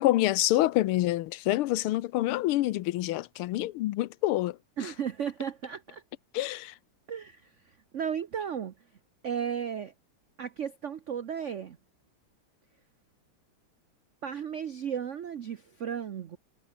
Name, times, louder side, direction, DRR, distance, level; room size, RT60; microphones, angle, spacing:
voice 1, 0.0-4.6 6.3-6.7, left 16 dB, 85° left, 1.6 m, -27 dB
voice 2, 4.8-6.0 7.1-7.5 7.9-8.7 9.2-9.9 10.4-11.8 14.2-16.4, right 8 dB, 90° right, 0.6 m, -34 dB
omnidirectional pair, 2.4 m